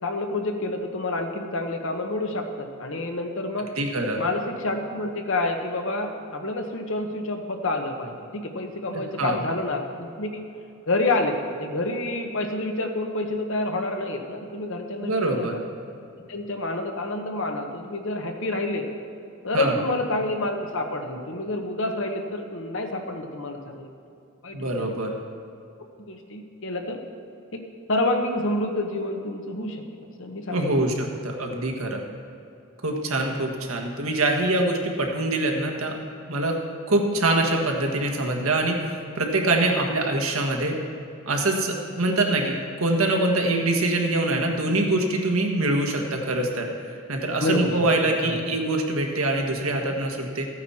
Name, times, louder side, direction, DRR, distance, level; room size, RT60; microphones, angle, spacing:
voice 1, 0.0-3.7 4.2-10.4 10.9-15.6 16.3-18.9 19.4-23.9 24.4-25.0 26.1-27.0 27.5-27.6 27.9-29.8 30.2-30.7 47.4-47.8 48.2-48.4, left 2 dB, 60° left, 4 dB, 1.1 m, -28 dB
voice 2, 3.8-4.2 8.9-9.4 15.0-15.6 19.5-19.8 24.5-25.1 30.5-32.0 32.8-36.0 36.3-36.6 36.9-38.8 39.1-40.8 41.3-46.7 47.1-50.5, right 2 dB, 75° right, 2 dB, 1.5 m, -24 dB
14.5 x 9.2 x 4.3 m, 2.7 s
head